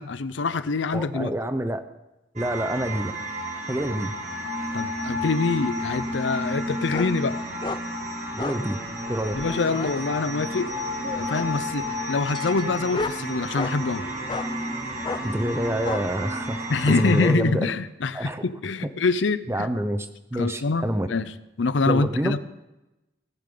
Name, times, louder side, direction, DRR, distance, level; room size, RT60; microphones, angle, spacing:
voice 1, 0.0-1.3 4.7-7.4 9.3-10.7 11.1-14.0 16.7-19.7 20.4-21.3 21.6-22.4, left 3 dB, 85° left, 14 dB, 0.6 m, -25 dB
voice 2, 0.9-1.8 2.3-3.1 3.7-4.1 8.3-8.8 9.1-9.4 15.2-17.7 18.1-18.5 19.5-20.1 20.3-21.1 21.9-22.3, right 1 dB, 15° right, 10 dB, 0.7 m, -27 dB
sound 1, 2.4-17.3, equal, 40° right, 2.3 m, -32 dB
sound 2, 6.9-7.1 7.6-7.8 8.4-8.6 9.2-9.9 11.0-11.6 12.3-13.8 14.3-14.5 15.0-15.3 15.8-16.0, left 3 dB, 25° left, 0.4 m, -33 dB
18.0 x 10.0 x 3.9 m, 0.99 s
head